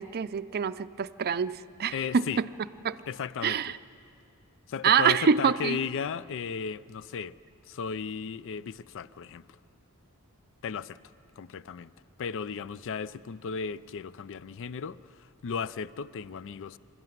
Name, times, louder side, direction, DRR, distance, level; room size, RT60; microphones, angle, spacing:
voice 1, 0.0-2.5 2.8-3.0 3.4-3.7 4.8-5.8, right 6 dB, 45° right, 0.5 m, -26 dB
voice 2, 1.9-2.4 3.1-3.6 4.7-7.4 7.7-9.4 10.6-11.0 11.4-11.9 12.2-16.8, left 6 dB, 60° left, 0.4 m, -35 dB
27.0 x 12.5 x 9.3 m
head